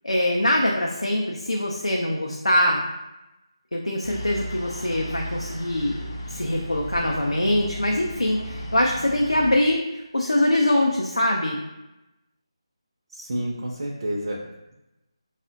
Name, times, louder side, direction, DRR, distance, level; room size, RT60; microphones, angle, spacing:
voice 1, 0.0-2.8 3.7-11.6, left 1 dB, 85° left, -1 dB, 0.4 m, -23 dB
sound 1, 4.0-9.5, equal, 40° left, 0.6 m, -36 dB
voice 2, 13.1-14.7, right 1 dB, 45° right, -2 dB, 0.4 m, -30 dB
5.0 x 2.1 x 2.6 m, 0.97 s
figure-of-eight pair, 155°, 3 cm